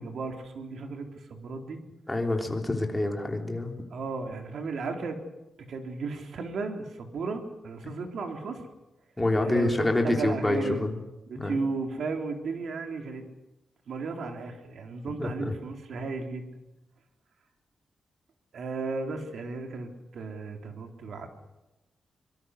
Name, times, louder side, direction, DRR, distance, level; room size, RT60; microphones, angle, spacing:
voice 1, 0.0-1.8 3.9-5.2 5.6-8.6 9.4-10.9 11.3-13.2 13.9-16.6 18.5-21.3, right 4 dB, 70° right, 4 dB, 3.7 m, -35 dB
voice 2, 2.1-3.7 9.2-10.9 11.4-11.5 15.2-15.5, left 2 dB, 10° left, 2 dB, 3.4 m, -27 dB
24.5 x 23.5 x 6.6 m, 0.99 s
wide cardioid pair, 150°, 0 cm